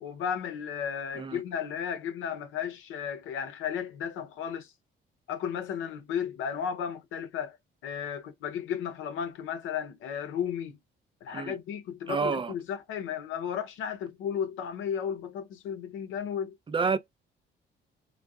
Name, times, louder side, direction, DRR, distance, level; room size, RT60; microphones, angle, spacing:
voice 1, 0.0-4.7 5.3-7.6 7.8-10.8 11.2-16.6, left 8 dB, 90° left, 0.7 m, -34 dB
voice 2, 12.1-12.5 16.7-17.0, right 5 dB, 25° right, 0.3 m, -29 dB
3.5 x 2.2 x 2.2 m
cardioid pair, 90°, 20 cm